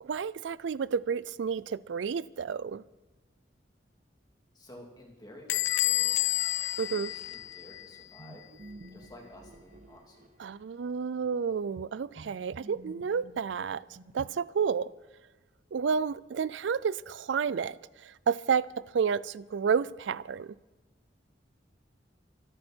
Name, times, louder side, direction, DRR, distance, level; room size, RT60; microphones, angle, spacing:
voice 1, 0.0-2.8 6.8-7.1 10.4-13.8 14.1-14.9 15.7-18.7 18.9-20.5, right 6 dB, 80° right, 0.4 m, -30 dB
voice 2, 4.5-6.3 6.8-8.4 8.9-10.3, left 1 dB, 20° left, 3.1 m, -52 dB
Bell / Squeak, 5.5-8.0, left 16 dB, 85° left, 0.4 m, -29 dB
sound 1, 8.2-10.7 12.2-14.6, right 1 dB, 45° right, 0.7 m, -51 dB
24.5 x 9.6 x 4.5 m
head